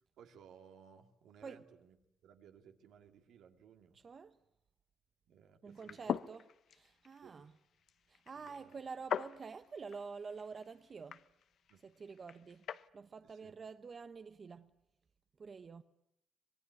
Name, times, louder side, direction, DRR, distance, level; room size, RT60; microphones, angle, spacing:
voice 1, 0.2-2.0 2.2-4.0 5.3-6.2 7.2-7.5 8.3-8.8 11.7-11.8 13.2-13.5, right 8 dB, 80° right, 2.6 m, -60 dB
voice 2, 3.9-4.4 5.6-6.4 6.8-7.5 8.1-11.3 11.8-12.7 12.9-14.7 15.4-15.8, right 5 dB, 40° right, 0.9 m, -48 dB
sound 1, 5.7-12.9, left 8 dB, 65° left, 0.9 m, -44 dB
25.5 x 19.5 x 9.8 m
cardioid pair, 90°, 0 cm